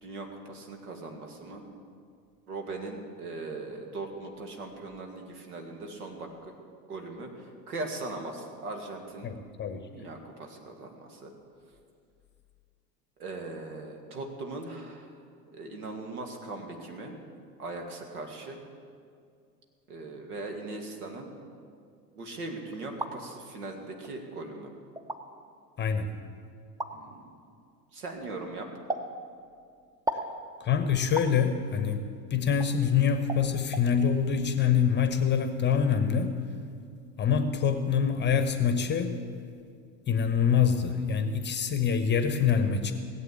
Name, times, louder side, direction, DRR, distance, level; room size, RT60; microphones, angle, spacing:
voice 1, 0.0-1.6 2.5-6.5 6.9-9.4 9.9-11.3 13.2-15.1 15.5-17.2 17.6-18.6 19.9-21.3 22.2-24.7 26.9-27.3 27.9-28.7, right 2 dB, 65° right, 3 dB, 2.3 m, -39 dB
voice 2, 9.2-9.8 25.8-26.1 30.6-36.4 37.2-39.2 40.1-42.9, left 7 dB, 20° left, 9 dB, 1.0 m, -25 dB
sound 1, 22.7-23.2 24.0-24.1 25.0-25.2 26.8-26.9 28.9-29.1 30.1-30.3 31.2-31.4 32.6-32.7 33.3-33.4 33.7-33.9, right 1 dB, 5° right, 0.8 m, -33 dB
17.5 x 8.1 x 8.4 m, 2.3 s
figure-of-eight pair, 75°, 48 cm